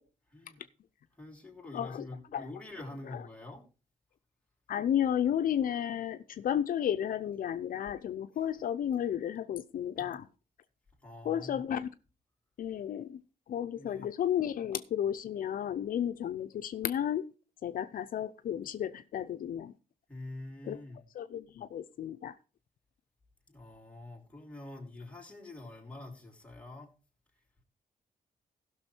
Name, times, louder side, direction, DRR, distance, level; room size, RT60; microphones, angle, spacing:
voice 1, 0.3-0.6 1.1-3.6 10.0-10.1 11.0-11.6 13.7-14.1 20.1-21.0 23.5-26.9, left 2 dB, 10° left, 3.0 m, -46 dB
voice 2, 1.7-2.0 2.3-2.5 4.7-10.3 11.3-11.9 12.6-13.2 13.5-17.3 17.6-19.7 20.7-20.8 21.2-22.3, left 10 dB, 70° left, 0.6 m, -32 dB
16.0 x 6.2 x 4.4 m
wide cardioid pair, 130°, 15 cm